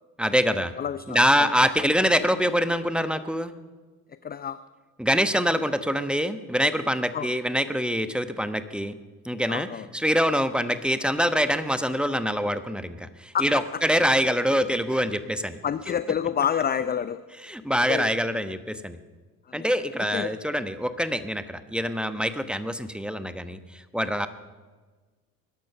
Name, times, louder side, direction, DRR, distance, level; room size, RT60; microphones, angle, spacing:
voice 1, 0.2-0.7 1.1-3.5 5.0-8.9 9.2-9.7 9.9-15.6 17.4-19.0 19.5-24.3, equal, ahead, 11 dB, 1.1 m, -25 dB
voice 2, 0.8-1.5 4.2-4.6 7.1-7.3 9.5-9.9 13.3-13.5 15.6-17.2 17.9-18.1 19.5-19.7 20.1-20.4, left 8 dB, 20° left, 14 dB, 0.5 m, -28 dB
21.0 x 12.0 x 5.7 m, 1.4 s
hypercardioid pair, 60°, 44 cm